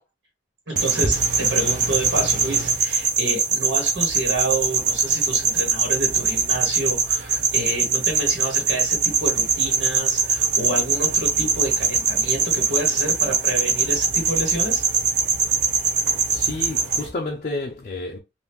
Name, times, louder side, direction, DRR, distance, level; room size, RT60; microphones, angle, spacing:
voice 1, 0.7-14.8, right 2 dB, 85° right, 1.4 m, -29 dB
sound 1, 0.8-17.1, right 5 dB, 45° right, 0.8 m, -22 dB
voice 2, 16.1-18.2, left 2 dB, 45° left, 0.4 m, -31 dB
2.9 x 2.6 x 3.5 m
head